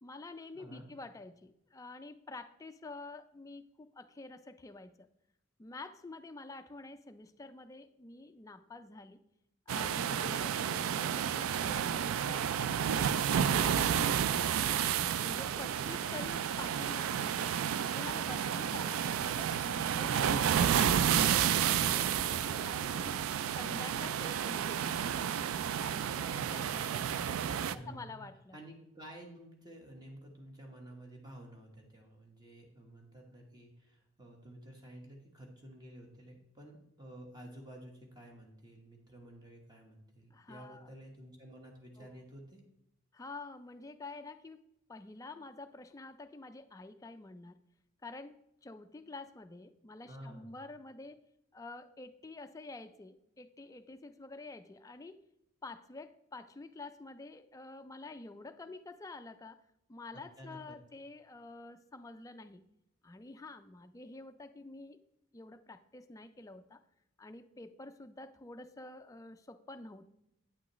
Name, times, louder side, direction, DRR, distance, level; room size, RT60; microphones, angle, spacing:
voice 1, 0.0-5.1 5.6-9.2 9.7-13.6 14.3-14.7 15.2-17.6 17.9-23.2 23.6-25.1 25.8-28.6 40.3-40.9 42.0-42.1 43.1-44.6 44.9-47.6 48.0-51.2 51.5-55.2 55.6-59.6 59.9-62.7 63.0-65.0 65.3-66.8 67.2-70.1, left 3 dB, 15° left, 8 dB, 0.3 m, -48 dB
sound 1, 9.7-27.7, right 8 dB, 85° right, 0.3 m, -31 dB
voice 2, 10.2-10.8 27.6-28.3 28.5-42.6 50.0-50.6 60.1-60.8, right 1 dB, 20° right, 1 dB, 1.2 m, -51 dB
8.5 x 6.1 x 3.1 m, 0.83 s
head